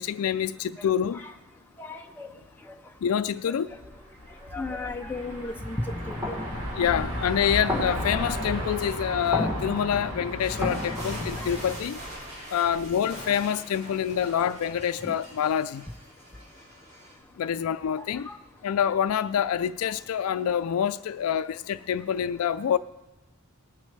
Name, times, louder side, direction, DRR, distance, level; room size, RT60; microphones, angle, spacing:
voice 1, 0.0-1.2 3.0-3.7 6.8-12.0 12.5-15.8 17.4-18.3 18.6-22.8, left 8 dB, 75° left, 0.3 m, -26 dB
voice 2, 1.8-2.3 4.5-5.8 6.1-6.2 11.0-11.1 11.4-11.5 15.0-15.1 18.0-18.4, left 3 dB, 10° left, 0.5 m, -36 dB
sound 1, 3.7-13.0, right 1 dB, 80° right, 1.9 m, -36 dB
sound 2, 5.8-11.8, left 1 dB, 15° right, 3.8 m, -33 dB
sound 3, 10.4-17.2, equal, 50° right, 3.6 m, -43 dB
19.5 x 9.4 x 3.3 m
head